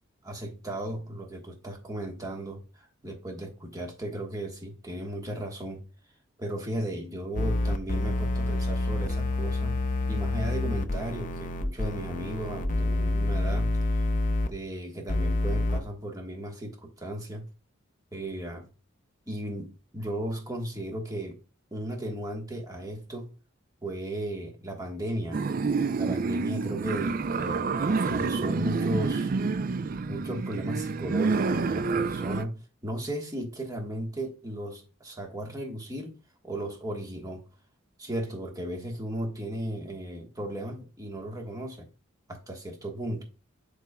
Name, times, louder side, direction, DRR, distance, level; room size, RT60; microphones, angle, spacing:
voice 1, 0.2-5.8 6.4-9.8 10.1-14.0 14.5-17.5 18.1-18.7 19.3-21.4 21.7-23.3 23.8-25.4 26.0-29.3 30.1-37.4 38.0-41.9 42.3-43.2, right 1 dB, 15° right, 1.3 m, -35 dB
sound 1, 7.3-14.5 15.1-15.8, left 2 dB, 40° left, 0.5 m, -28 dB
sound 2, 25.3-32.4, right 4 dB, 40° right, 0.3 m, -28 dB
9.6 x 4.9 x 2.2 m
head